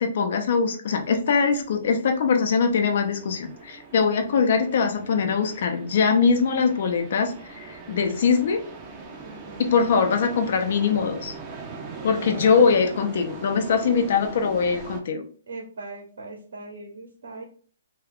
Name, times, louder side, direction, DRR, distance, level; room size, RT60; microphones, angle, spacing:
voice 1, 0.0-8.6 9.6-11.3 12.0-15.2, left 5 dB, 60° left, 5 dB, 0.6 m, -22 dB
sound 1, 0.8-15.0, right 4 dB, 25° right, 0.6 m, -41 dB
voice 2, 9.2-9.7 12.0-12.3 15.5-17.4, right 3 dB, 70° right, 1 dB, 0.8 m, -40 dB
2.3 x 2.3 x 3.4 m, 0.43 s
hypercardioid pair, 140°, 0 cm